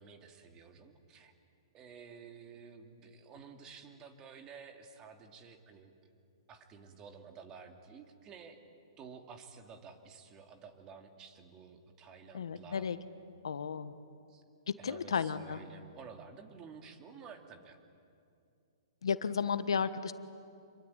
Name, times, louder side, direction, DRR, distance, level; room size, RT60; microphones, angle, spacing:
voice 1, 0.0-1.3 1.7-5.9 6.5-8.6 9.0-12.9 14.3-14.4 14.8-17.8, right 6 dB, 25° right, 5 dB, 2.7 m, -52 dB
voice 2, 12.3-13.0 13.4-13.9 14.8-15.6 19.0-20.1, left 6 dB, 80° left, 12 dB, 1.3 m, -33 dB
27.0 x 23.0 x 9.3 m, 2.5 s
hypercardioid pair, 140°, 3 cm